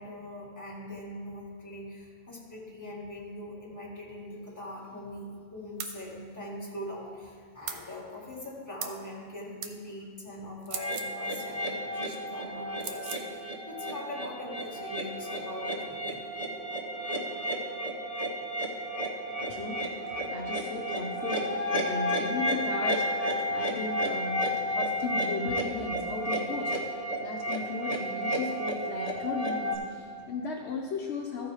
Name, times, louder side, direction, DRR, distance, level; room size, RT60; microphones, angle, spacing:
voice 1, 0.0-5.3 5.5-16.2, left 1 dB, 15° left, -4 dB, 1.7 m, -42 dB
sound 1, 5.8-6.0 7.7-7.8 8.8-9.0 9.6-9.8 10.6-11.1 12.8-13.3, right 7 dB, 70° right, 1.0 m, -38 dB
sound 2, 10.7-29.8, equal, 35° left, 1.1 m, -32 dB
voice 2, 19.5-31.5, left 4 dB, 65° left, -1 dB, 1.0 m, -36 dB
14.0 x 4.7 x 4.8 m, 2.3 s
omnidirectional pair, 1.2 m